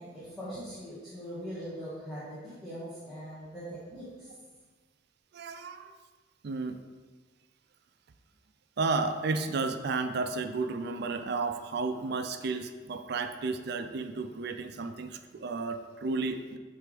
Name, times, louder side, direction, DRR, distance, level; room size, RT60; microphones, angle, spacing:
voice 1, 0.0-4.3, equal, ahead, -12 dB, 1.7 m, -41 dB
voice 2, 5.3-5.9 6.4-6.8 8.8-16.6, right 3 dB, 60° right, 8 dB, 0.5 m, -32 dB
8.0 x 3.4 x 5.0 m, 1.4 s
head